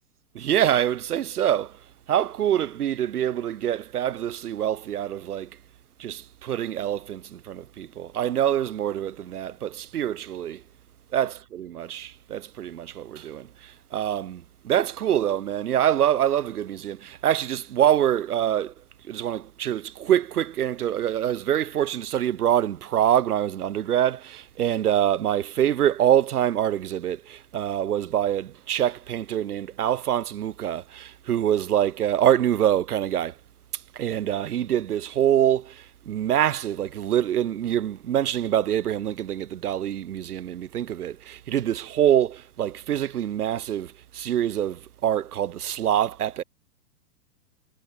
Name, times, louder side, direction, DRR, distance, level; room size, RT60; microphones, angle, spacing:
voice 1, 0.3-1.8 2.1-5.5 6.0-10.6 11.1-18.7 19.0-33.4 33.7-46.4, right 10 dB, 75° right, 2.5 m, -25 dB
hypercardioid pair, 135°, 46 cm